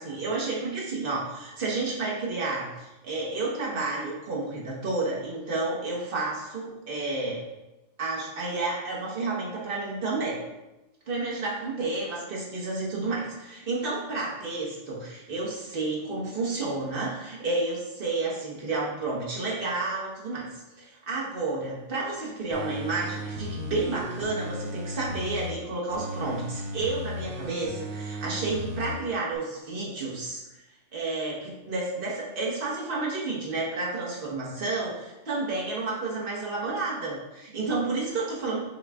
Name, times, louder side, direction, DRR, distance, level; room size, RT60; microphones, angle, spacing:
voice 1, 0.0-7.5 8.0-10.4 11.1-20.5 20.8-30.4 30.9-38.6, right 3 dB, 50° right, -5 dB, 1.4 m, -31 dB
sound 1, 22.5-25.5 25.9-28.9 29.3-29.4, equal, 75° right, 1.1 m, -35 dB
6.4 x 2.4 x 3.5 m, 1.0 s
omnidirectional pair, 1.2 m